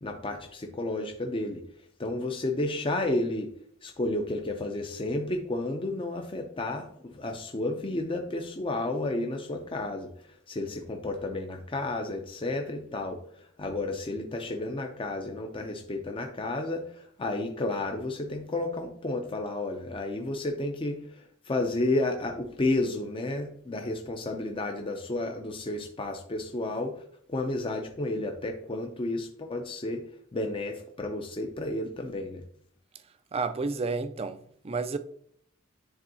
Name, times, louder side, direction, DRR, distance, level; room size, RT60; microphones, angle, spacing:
voice 1, 0.0-1.6 2.0-3.5 3.8-30.0 30.3-32.4, left 2 dB, 25° left, 0.5 m, -32 dB
voice 2, 33.3-34.4 34.6-35.0, right 4 dB, 30° right, 0.4 m, -30 dB
10.5 x 3.5 x 2.7 m
head